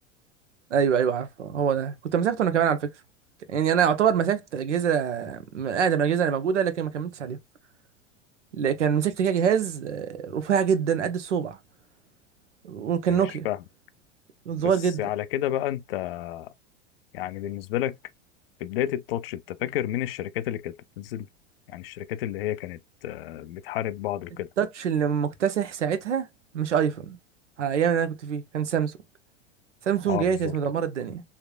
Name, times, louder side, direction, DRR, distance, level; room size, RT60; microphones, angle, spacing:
voice 1, 0.7-2.9 3.5-7.4 8.5-11.6 12.6-13.5 14.5-15.0 24.6-26.3 26.5-27.2 27.6-28.9 29.9-31.2, right 8 dB, 75° right, 0.8 m, -25 dB
voice 2, 13.1-13.6 14.6-14.7 15.0-16.5 17.1-18.0 18.6-21.3 21.7-24.5 30.1-30.5, left 12 dB, 55° left, 0.5 m, -31 dB
3.5 x 3.2 x 2.2 m
figure-of-eight pair, 90°, 36 cm